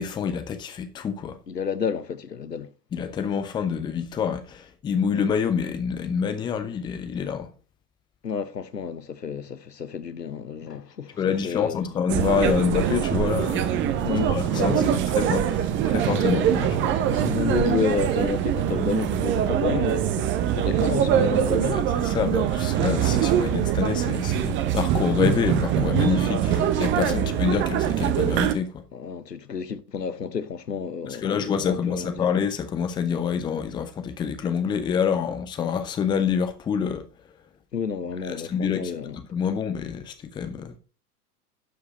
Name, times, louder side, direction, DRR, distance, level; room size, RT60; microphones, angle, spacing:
voice 1, 0.0-1.4 2.9-7.5 11.2-13.8 14.3-17.1 21.7-28.8 31.1-37.0 38.3-38.9 39.3-40.8, left 7 dB, 10° left, 0.6 m, -27 dB
voice 2, 1.5-2.7 8.2-11.9 14.0-15.0 17.1-21.9 26.9-27.3 28.9-32.3 37.7-39.2, left 6 dB, 85° left, 0.8 m, -30 dB
sound 1, 12.1-28.5, right 10 dB, 25° right, 0.9 m, -23 dB
11.5 x 4.8 x 5.1 m
figure-of-eight pair, 95°, 48 cm